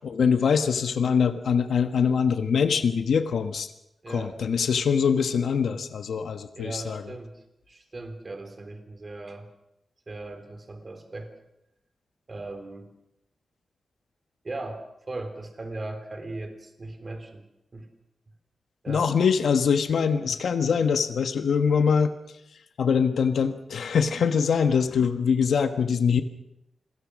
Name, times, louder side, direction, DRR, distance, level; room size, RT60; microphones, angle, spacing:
voice 1, 0.1-3.7 4.1-7.0 18.9-22.1 22.8-26.2, left 6 dB, 85° left, 8 dB, 1.4 m, -23 dB
voice 2, 4.0-4.3 6.5-7.4 7.7-9.5 10.1-11.3 12.3-12.9 14.4-14.8 15.1-17.4 17.7-17.9 18.8-19.1 20.2-20.3, right 2 dB, 30° right, 7 dB, 3.8 m, -38 dB
27.5 x 21.5 x 6.4 m, 0.84 s
wide cardioid pair, 135°, 0 cm